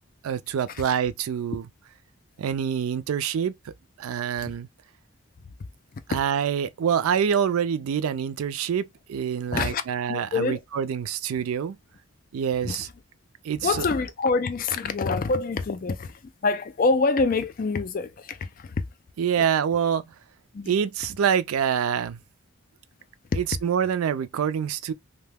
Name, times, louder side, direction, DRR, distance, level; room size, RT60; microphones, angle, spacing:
voice 1, 0.2-1.6 2.4-3.7 4.0-4.7 6.1-11.8 12.3-12.9 13.4-13.8 19.2-20.1 20.7-22.2 23.3-24.9, right 8 dB, 80° right, 0.3 m, -26 dB
voice 2, 9.5-9.8 10.1-10.6 12.6-12.8 13.6-18.8 20.5-20.7 23.3-23.4, left 4 dB, 40° left, 0.3 m, -26 dB
2.8 x 2.1 x 3.3 m
head